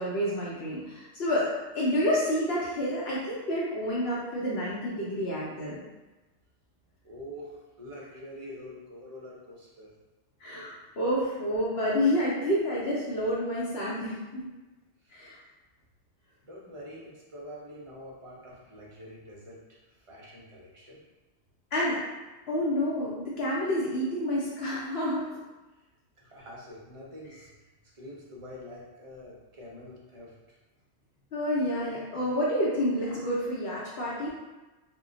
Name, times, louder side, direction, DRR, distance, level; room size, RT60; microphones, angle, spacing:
voice 1, 0.0-1.5 1.7-5.8 10.4-14.5 15.1-15.4 21.7-22.0 22.5-25.2 31.3-34.3, equal, 65° left, -6 dB, 0.8 m, -29 dB
voice 2, 7.0-9.9 15.0-15.3 16.4-19.6 20.1-21.0 26.2-27.5 27.9-30.3, equal, 40° right, -5 dB, 0.5 m, -45 dB
2.1 x 2.1 x 3.6 m, 1.1 s
omnidirectional pair, 1.2 m